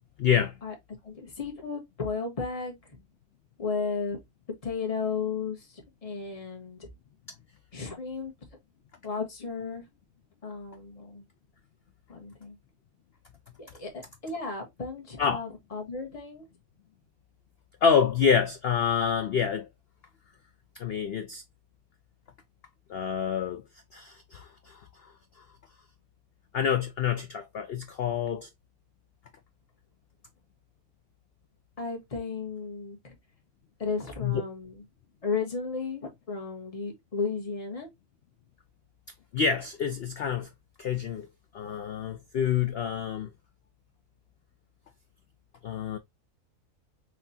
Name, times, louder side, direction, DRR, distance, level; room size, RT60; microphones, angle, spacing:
voice 1, 0.2-0.5 15.2-15.4 17.8-19.7 20.7-21.4 22.9-23.6 23.9-25.4 26.5-28.5 34.2-34.4 39.3-40.5 40.8-41.3 41.5-43.3 45.6-46.0, left 7 dB, 90° left, 0.5 m, -27 dB
voice 2, 1.0-3.0 3.6-4.2 4.6-6.9 7.7-8.3 9.0-9.8 10.4-11.3 12.1-12.6 13.6-16.5 31.8-33.1 33.8-34.8 35.2-37.9, left 5 dB, 25° left, 1.3 m, -34 dB
5.7 x 3.0 x 2.7 m
omnidirectional pair, 1.7 m